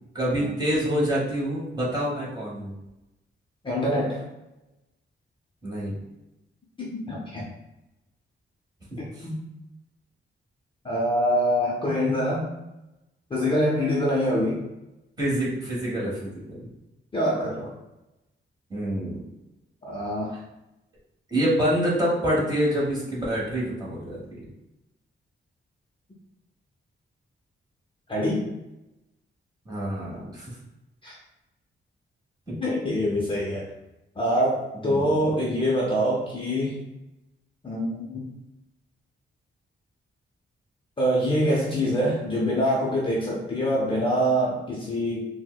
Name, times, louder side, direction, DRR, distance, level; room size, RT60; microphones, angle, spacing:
voice 1, 0.1-2.7 5.6-5.9 9.2-9.3 15.2-16.7 18.7-19.2 21.3-24.4 29.6-30.5 32.5-32.6 34.8-35.1, equal, 20° right, -6 dB, 1.0 m, -26 dB
voice 2, 3.6-4.2 6.8-7.4 9.2-9.4 10.8-12.5 13.3-14.6 17.1-17.7 19.8-20.3 28.1-28.4 31.0-31.1 32.5-33.6 34.2-36.8 37.6-38.3 41.0-45.3, equal, 25° left, -4 dB, 0.5 m, -25 dB
4.3 x 2.1 x 2.3 m, 0.96 s
wide cardioid pair, 150°, 21 cm